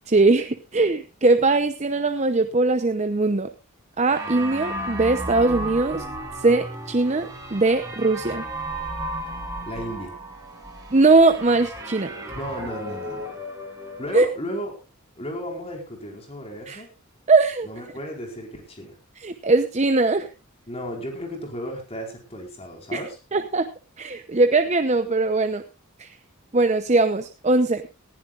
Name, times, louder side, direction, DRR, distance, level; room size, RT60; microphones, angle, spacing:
voice 1, 0.1-3.5 4.0-6.1 6.4-8.4 10.9-12.1 14.1-14.3 16.7-16.8 17.3-17.7 19.2-20.3 22.9-23.0 23.3-23.7 24.0-25.6 26.0-26.2 26.5-27.8, right 3 dB, 30° right, 8 dB, 0.8 m, -20 dB
sound 1, 4.1-14.3, right 1 dB, 15° right, 5.7 m, -34 dB
voice 2, 9.6-10.2 12.3-13.4 14.0-14.8 15.1-16.9 17.6-19.0 20.7-23.2, equal, 30° left, 2 dB, 4.6 m, -34 dB
19.5 x 15.0 x 2.5 m, 0.28 s
head